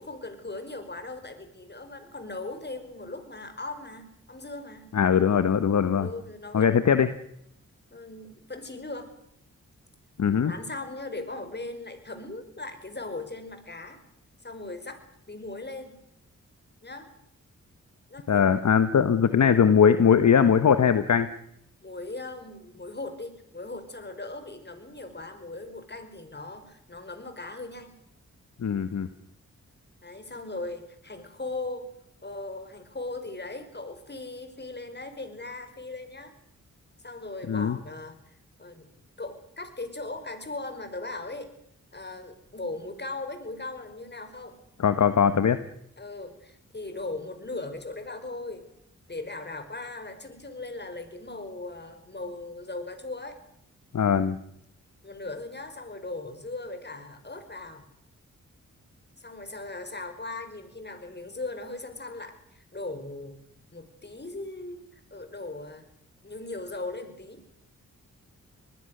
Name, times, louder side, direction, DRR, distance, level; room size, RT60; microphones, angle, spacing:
voice 1, 0.0-4.9 6.0-6.8 7.9-9.1 10.3-14.0 14.4-15.0 15.3-16.0 16.8-17.1 18.1-18.6 21.8-28.0 30.0-31.9 32.2-36.3 37.0-38.9 39.2-41.5 41.9-44.6 46.0-48.6 49.1-53.4 55.0-57.9 59.2-63.4 63.7-65.8 66.2-67.4, left 2 dB, 35° left, 8 dB, 5.2 m, -38 dB
voice 2, 4.9-6.1 6.5-7.1 10.2-10.5 18.3-21.3 28.6-29.1 37.5-37.8 44.8-45.6 53.9-54.4, left 7 dB, 60° left, 12 dB, 1.2 m, -21 dB
24.5 x 20.5 x 6.7 m, 0.74 s
cardioid pair, 50°, 32 cm